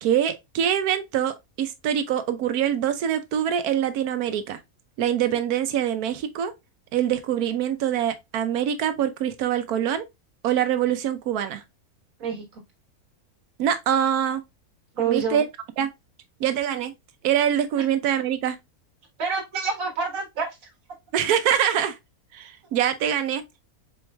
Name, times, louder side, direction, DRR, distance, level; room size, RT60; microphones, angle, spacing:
voice 1, 0.0-4.6 5.0-6.5 6.9-10.0 10.4-11.6 13.6-14.4 15.1-15.4 15.8-15.9 16.4-16.9 17.2-18.6 21.1-22.0 22.3-23.6, right 10 dB, 90° right, 1.2 m, -24 dB
voice 2, 12.2-12.6 14.9-15.5 19.2-20.6, right 5 dB, 65° right, 1.8 m, -27 dB
4.5 x 4.3 x 2.2 m
omnidirectional pair, 1.6 m